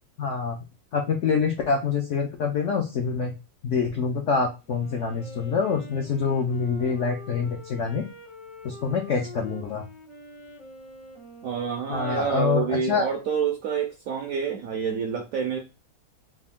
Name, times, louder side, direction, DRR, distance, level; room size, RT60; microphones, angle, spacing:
voice 1, 0.2-0.6 0.9-3.3 3.6-8.0 8.6-9.8 11.9-13.1, left 5 dB, 75° left, 2 dB, 0.6 m, -26 dB
Wind instrument woodwind instrument, 4.7-12.4, equal, 35° left, 0.5 m, -45 dB
voice 2, 11.4-15.6, right 6 dB, 75° right, 4 dB, 0.8 m, -27 dB
3.6 x 2.4 x 3.5 m, 0.27 s
omnidirectional pair, 1.9 m